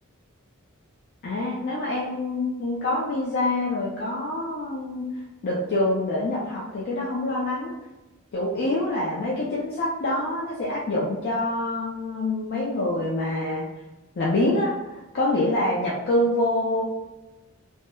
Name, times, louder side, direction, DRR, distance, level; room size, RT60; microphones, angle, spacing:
voice 1, 1.2-5.0 5.4-7.7 8.3-13.7 14.2-14.7 15.1-16.8, left 1 dB, 50° left, -4 dB, 0.4 m, -26 dB
2.9 x 2.0 x 2.2 m, 1.1 s
head